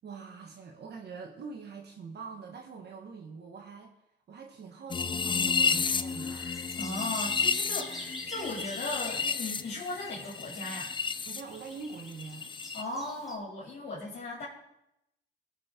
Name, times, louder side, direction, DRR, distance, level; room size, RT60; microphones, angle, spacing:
voice 1, 0.0-3.9 4.3-6.4 11.3-12.5, right 5 dB, 55° right, 2 dB, 1.3 m, -44 dB
sound 1, 4.9-11.4 11.7-12.8, left 5 dB, 25° left, 0.4 m, -31 dB
Bird vocalization bird call bird song, 5.0-13.4, left 1 dB, ahead, 1.9 m, -47 dB
sound 2, 6.1-10.9, left 6 dB, 80° left, 1.3 m, -50 dB
voice 2, 6.8-10.9 12.7-14.5, left 2 dB, 60° left, -5 dB, 2.9 m, -37 dB
16.0 x 6.4 x 3.7 m, 0.84 s
cardioid pair, 90°, 20 cm